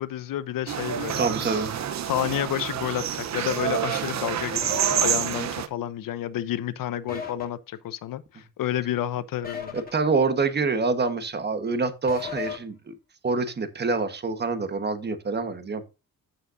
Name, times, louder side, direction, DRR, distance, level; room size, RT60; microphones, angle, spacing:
voice 1, 0.0-1.6 2.1-9.8, left 12 dB, 85° left, 0.8 m, -30 dB
sound 1, 0.7-5.7, right 9 dB, 55° right, 0.9 m, -28 dB
voice 2, 1.2-1.7 9.7-13.0 13.2-15.8, right 4 dB, 30° right, 1.3 m, -26 dB
sound 2, 4.6-5.0 7.1-7.5 9.4-9.9 12.1-12.6, left 7 dB, 25° left, 2.6 m, -34 dB
14.5 x 5.6 x 2.6 m
wide cardioid pair, 145°, 33 cm